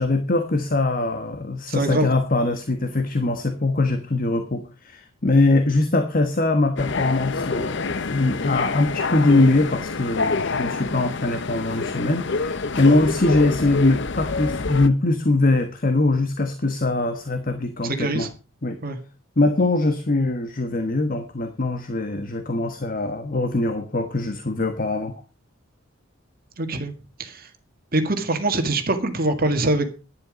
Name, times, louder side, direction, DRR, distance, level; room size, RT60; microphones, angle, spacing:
voice 1, 0.0-18.3 18.6-18.8 19.4-25.1, left 2 dB, 40° left, 7 dB, 1.3 m, -22 dB
voice 2, 1.7-2.1 17.8-18.3 18.8-19.0 26.6-26.9 27.2-27.5 27.9-29.9, right 2 dB, 45° right, 7 dB, 1.8 m, -23 dB
sound 1, 6.8-14.9, left 4 dB, 55° left, 0.7 m, -27 dB
11.0 x 10.5 x 5.1 m, 0.32 s
head